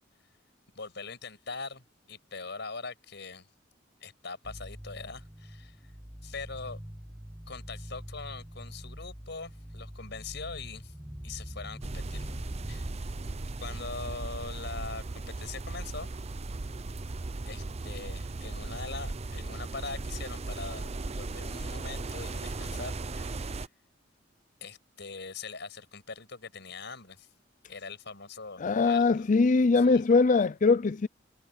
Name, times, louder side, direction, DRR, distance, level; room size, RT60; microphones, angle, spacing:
voice 1, 0.7-3.5 4.0-5.9 6.2-6.8 7.5-10.9 11.2-12.3 12.7-12.9 13.6-16.1 17.4-23.7 24.6-27.3 27.7-29.3 29.7-30.0, left 4 dB, 65° left, 6.8 m, -42 dB
sound 1, 4.4-13.0, equal, 10° right, 1.5 m, -44 dB
sound 2, 11.8-23.7, right 2 dB, 35° right, 0.7 m, -37 dB
voice 2, 28.6-31.1, left 4 dB, 40° left, 0.5 m, -22 dB
head